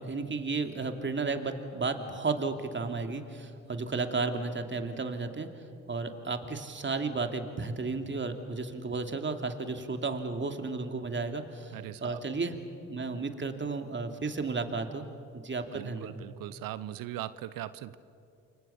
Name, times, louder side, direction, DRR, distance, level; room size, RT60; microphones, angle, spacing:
voice 1, 0.0-5.5 5.9-12.5 12.9-15.1 15.3-16.2, right 4 dB, 30° right, 6 dB, 2.8 m, -33 dB
voice 2, 11.7-12.2 15.7-18.0, right 13 dB, 65° right, 16 dB, 0.8 m, -40 dB
29.5 x 23.0 x 7.1 m, 2.5 s
hypercardioid pair, 50°, 36 cm